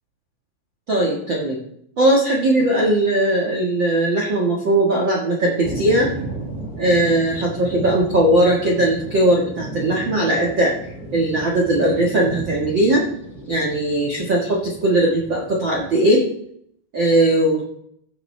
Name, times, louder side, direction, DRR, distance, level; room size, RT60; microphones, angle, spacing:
voice 1, 0.9-1.6 2.0-6.1 6.8-10.7 11.1-13.0 13.5-16.2 16.9-17.6, right 1 dB, 70° right, -3 dB, 1.1 m, -19 dB
sound 1, 5.6-15.9, right 2 dB, 15° left, 3.2 m, -34 dB
16.0 x 6.6 x 3.3 m, 0.70 s
omnidirectional pair, 4.7 m